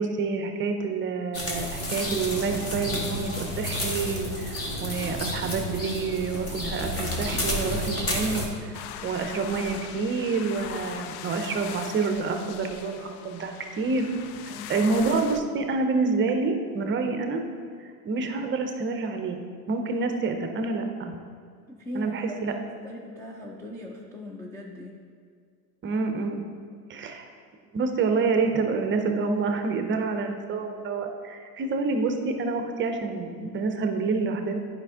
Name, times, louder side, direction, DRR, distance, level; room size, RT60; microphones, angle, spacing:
voice 1, 0.0-14.1 14.7-17.4 18.0-19.4 19.7-21.2 21.9-22.5 25.8-26.4 26.9-27.2 27.7-34.6, right 4 dB, 25° right, 5 dB, 0.7 m, -28 dB
sound 1, 1.3-8.5, left 1 dB, 30° left, 1.5 m, -31 dB
sound 2, 8.7-15.4, left 9 dB, 65° left, 0.6 m, -40 dB
voice 2, 14.5-14.8 21.7-22.6 22.8-25.0, left 1 dB, 5° left, -2 dB, 0.4 m, -39 dB
9.0 x 5.2 x 3.6 m, 2.2 s
hypercardioid pair, 105°, 46 cm